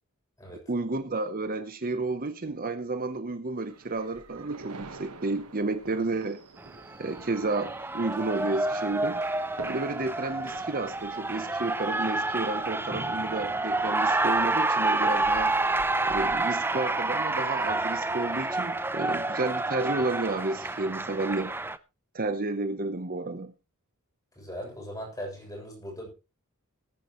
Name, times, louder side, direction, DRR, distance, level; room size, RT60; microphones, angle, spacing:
voice 1, 0.7-6.4 7.0-9.2 9.7-15.5 16.1-21.5 22.1-23.5, right 2 dB, 40° right, 9 dB, 0.9 m, -31 dB
sound 1, 3.6-16.4, right 3 dB, 85° right, 1.4 m, -48 dB
Cheering, 6.6-21.8, right 2 dB, 10° right, 0.5 m, -29 dB
voice 2, 24.4-26.1, equal, 15° left, -1 dB, 7.1 m, -39 dB
19.5 x 9.9 x 3.1 m, 0.30 s
head